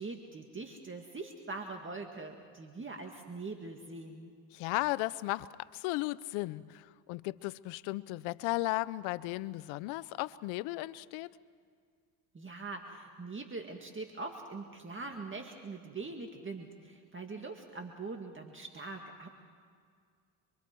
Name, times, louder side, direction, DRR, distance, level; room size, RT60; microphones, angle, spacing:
voice 1, 0.0-4.3 12.3-19.3, right 3 dB, 25° right, 3 dB, 2.0 m, -43 dB
voice 2, 4.5-11.3, left 19 dB, 85° left, 16 dB, 0.7 m, -35 dB
27.5 x 23.5 x 4.6 m, 2.1 s
supercardioid pair, 80°, 46 cm